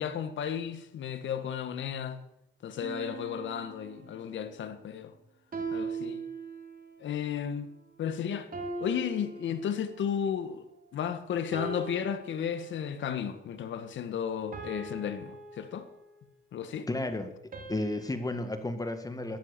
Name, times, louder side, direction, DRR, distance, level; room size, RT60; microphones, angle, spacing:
voice 1, 0.0-2.2 2.6-5.2 5.7-6.2 7.0-7.7 8.0-8.5 8.8-10.6 10.9-15.9 16.5-16.9, left 8 dB, 70° left, 1.9 m, -33 dB
sound 1, 2.8-4.5 5.5-7.0 8.5-10.2 11.5-13.0 14.5-16.3 17.5-18.6, right 4 dB, 45° right, 3.5 m, -41 dB
voice 2, 16.9-17.3 17.7-19.4, left 2 dB, 20° left, 1.9 m, -32 dB
14.0 x 12.5 x 7.0 m
cardioid pair, 90°, 20 cm